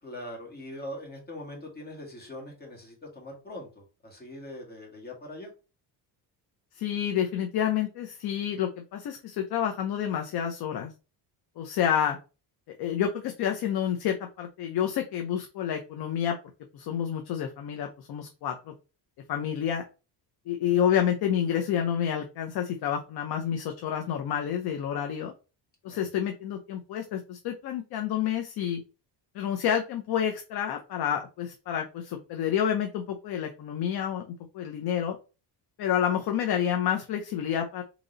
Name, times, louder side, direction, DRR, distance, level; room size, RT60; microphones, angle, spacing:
voice 1, 0.0-5.5 25.9-26.0, left 1 dB, 20° left, -1 dB, 1.9 m, -42 dB
voice 2, 6.8-10.9 11.6-12.2 12.7-16.4 16.7-18.7 19.3-19.8 20.5-25.3 25.8-28.8 29.3-35.2 35.8-37.8, left 9 dB, 60° left, 3 dB, 0.7 m, -29 dB
3.9 x 3.0 x 3.9 m, 0.32 s
cardioid pair, 135°, 42 cm